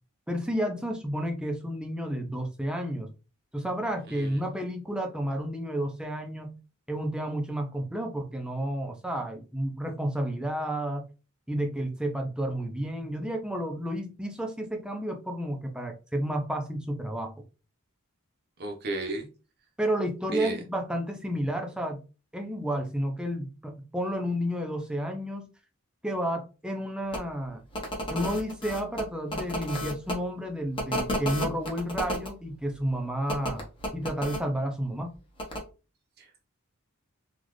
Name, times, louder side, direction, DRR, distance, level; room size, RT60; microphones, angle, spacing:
voice 1, 0.3-3.1 3.5-6.6 6.9-11.1 11.5-17.3 19.8-22.0 22.3-25.5 26.0-27.6 28.1-33.6 33.9-35.2, equal, 5° right, 0.6 m, -31 dB
voice 2, 4.1-4.4 18.6-19.3 20.3-20.6 36.2-36.3, right 2 dB, 45° right, 0.9 m, -34 dB
sound 1, 27.1-27.2 27.7-30.1 30.8-32.3 33.3-34.4 35.4-35.6, equal, 25° left, 0.9 m, -32 dB
4.0 x 2.4 x 3.1 m
head